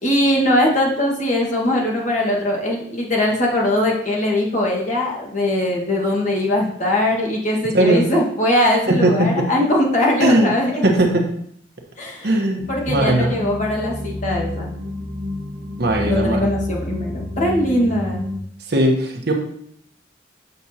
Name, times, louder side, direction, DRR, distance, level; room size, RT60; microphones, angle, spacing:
voice 1, 0.0-10.8 12.0-12.3 12.7-14.7 16.0-18.3, left 1 dB, 40° left, -2 dB, 1.6 m, -20 dB
voice 2, 8.9-9.5 10.2-10.5 10.8-11.2 12.2-13.3 15.8-16.4 18.7-19.3, right 1 dB, 55° right, 1 dB, 1.1 m, -18 dB
sound 1, 12.6-18.4, left 2 dB, 35° right, 1.4 m, -29 dB
8.0 x 5.9 x 2.8 m, 0.69 s
head